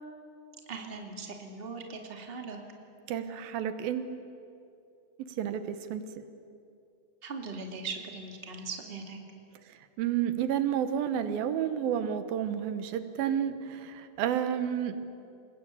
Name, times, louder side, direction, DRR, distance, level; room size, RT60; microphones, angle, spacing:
voice 1, 0.7-2.6 7.2-9.2, right 4 dB, 20° right, 2 dB, 2.1 m, -40 dB
voice 2, 3.1-4.2 5.4-6.0 10.0-15.0, right 9 dB, 85° right, 10 dB, 3.0 m, -30 dB
28.5 x 20.0 x 8.4 m, 2.6 s
omnidirectional pair, 4.1 m